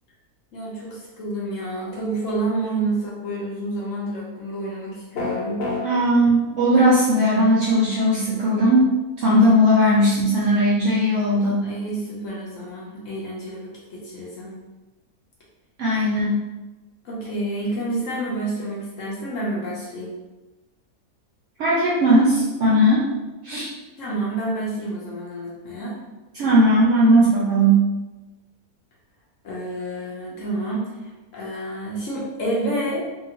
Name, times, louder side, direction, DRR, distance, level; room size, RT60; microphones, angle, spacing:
voice 1, 0.5-5.7 11.6-14.6 17.0-20.1 24.0-26.0 29.4-33.0, right 2 dB, 60° left, -5 dB, 1.0 m, -29 dB
sound 1, 5.1-5.8, left 3 dB, 85° left, 1.4 m, -26 dB
voice 2, 5.8-8.9 9.2-11.6 15.8-16.4 21.6-23.1 23.4-23.7 26.3-27.9, equal, 70° right, -5 dB, 0.7 m, -18 dB
2.8 x 2.6 x 2.8 m, 1.1 s
omnidirectional pair, 1.7 m